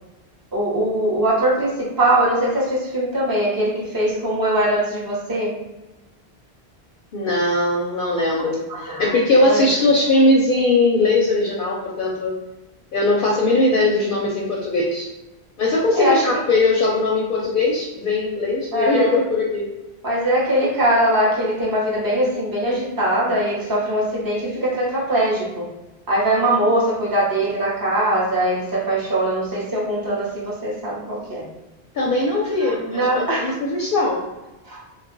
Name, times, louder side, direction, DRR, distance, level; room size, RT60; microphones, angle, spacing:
voice 1, 0.5-5.6 8.7-9.6 16.0-16.4 18.7-19.2 20.0-25.7 26.1-31.5 32.6-33.5 34.6-34.8, right 1 dB, 25° right, -6 dB, 0.8 m, -21 dB
voice 2, 7.1-12.3 12.9-15.1 15.6-19.7 31.9-34.2, left 2 dB, 65° left, -2 dB, 0.7 m, -20 dB
2.3 x 2.1 x 3.7 m, 1.0 s
omnidirectional pair, 1.0 m